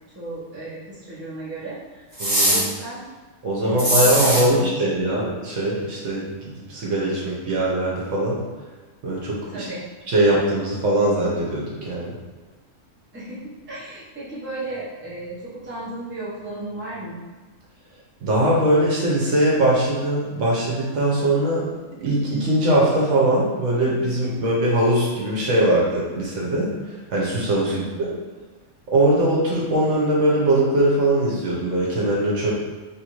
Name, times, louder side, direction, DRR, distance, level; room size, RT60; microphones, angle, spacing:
voice 1, 0.1-2.0 2.4-3.1 3.6-4.7 9.5-9.9 13.1-17.2 27.6-28.2, right 2 dB, 10° right, -9 dB, 0.7 m, -35 dB
sound 1, 2.2-2.6 3.8-4.4, right 1 dB, 25° right, 1.4 m, -20 dB
voice 2, 2.2-2.7 3.4-8.4 9.0-9.7 10.1-12.1 18.2-21.7 22.0-26.7 27.1-28.1 28.9-32.5, right 1 dB, 70° right, -4 dB, 1.1 m, -21 dB
3.2 x 2.5 x 3.0 m, 1.3 s
omnidirectional pair, 1.4 m